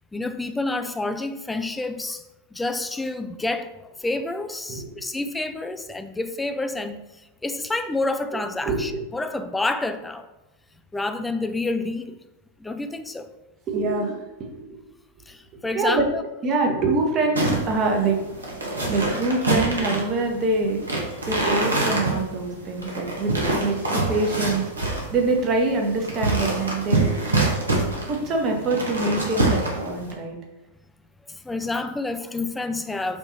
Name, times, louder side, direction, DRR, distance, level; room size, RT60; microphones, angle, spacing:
voice 1, 0.1-2.2 2.5-10.3 10.9-12.2 12.6-13.3 15.3-16.2 23.6-23.8 31.3-33.2, left 2 dB, 10° left, 8 dB, 0.3 m, -29 dB
voice 2, 4.7-5.1 8.6-9.0 13.7-14.8 15.7-16.1 16.4-18.2 18.9-20.8 21.2-27.0 28.1-30.4, right 3 dB, 30° right, 1 dB, 0.9 m, -25 dB
sound 1, 17.3-30.1, right 2 dB, 75° right, 0.9 m, -26 dB
4.6 x 2.7 x 4.1 m, 0.99 s
figure-of-eight pair, 90°, 0 cm